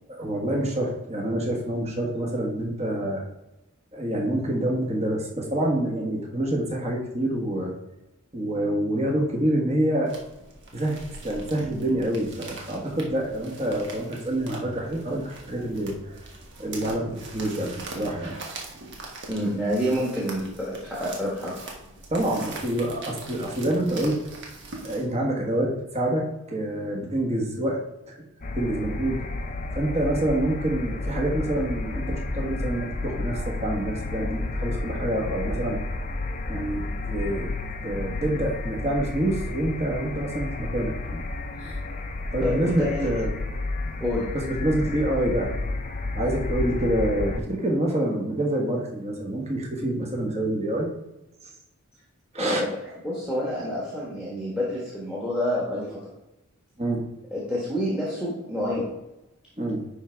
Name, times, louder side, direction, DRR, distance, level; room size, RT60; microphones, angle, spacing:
voice 1, 0.2-3.2 3.9-7.7 8.3-10.1 10.7-16.0 16.6-18.3 22.1-24.2 24.8-27.8 28.1-28.2 28.6-29.2 29.7-35.8 36.5-37.5 37.8-41.2 41.6-41.7 42.3-43.3 44.3-45.5 46.1-50.9 52.3-52.6 56.8-57.0 59.6-59.8, right 1 dB, 30° right, 0 dB, 1.4 m, -27 dB
sound 1, 10.1-25.1, right 3 dB, 50° right, 1.5 m, -42 dB
voice 2, 19.3-21.5 42.4-43.0 44.0-44.3 52.4-56.0 57.3-58.9, left 1 dB, 5° right, -5 dB, 1.4 m, -28 dB
sound 2, 28.4-47.4, left 2 dB, 35° left, 0.5 m, -31 dB
10.5 x 3.6 x 4.5 m, 0.96 s
head